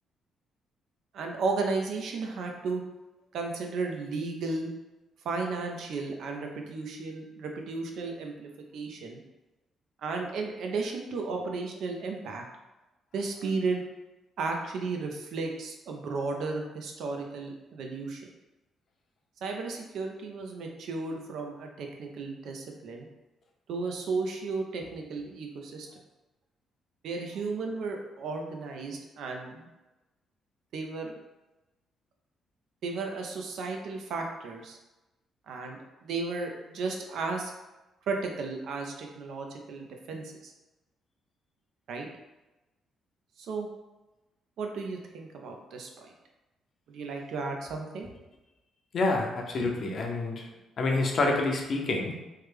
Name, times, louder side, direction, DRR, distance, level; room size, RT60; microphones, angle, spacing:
voice 1, 1.1-2.8 3.3-4.7 5.2-9.2 10.0-12.4 13.1-13.8 14.4-18.2 19.4-23.1 23.7-25.9 27.0-29.7 30.7-31.1 32.8-34.8 35.5-37.5 38.1-40.5 41.9-42.1 43.4-43.7 44.6-46.1 46.9-48.1 49.6-50.0, right 4 dB, 75° right, 2 dB, 0.5 m, -34 dB
voice 2, 48.9-50.5 50.8-52.1, left 3 dB, 55° left, 1 dB, 0.6 m, -27 dB
3.2 x 2.1 x 3.3 m, 1.1 s
cardioid pair, 90°, 0 cm